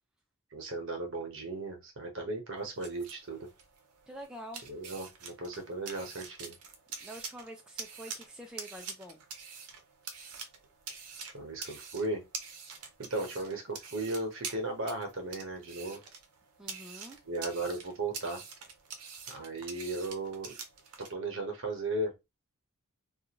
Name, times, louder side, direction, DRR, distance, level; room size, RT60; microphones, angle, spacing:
voice 1, 0.5-3.5 4.7-6.6 11.2-12.2 13.0-16.0 17.2-18.4 19.3-20.5 21.1-22.1, right 2 dB, 55° right, 1.0 m, -36 dB
sound 1, 2.6-21.1, right 5 dB, 90° right, 0.6 m, -46 dB
voice 2, 4.1-4.6 7.0-9.2 16.6-17.2, right 1 dB, 5° right, 0.3 m, -46 dB
2.5 x 2.4 x 2.9 m
head